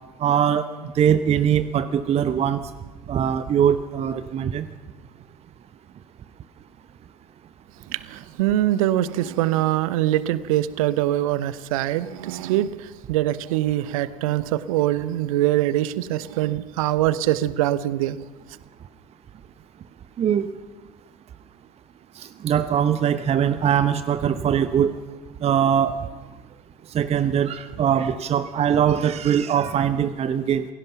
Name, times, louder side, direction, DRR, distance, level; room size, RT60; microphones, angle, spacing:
voice 1, 0.2-2.6 3.1-4.7 20.2-20.5 22.2-24.9 25.4-25.9 26.9-30.7, right 9 dB, 35° right, 0.9 m, -21 dB
voice 2, 7.9-18.2, right 14 dB, 65° right, 0.9 m, -23 dB
27.5 x 17.5 x 5.8 m
figure-of-eight pair, 70°, 19 cm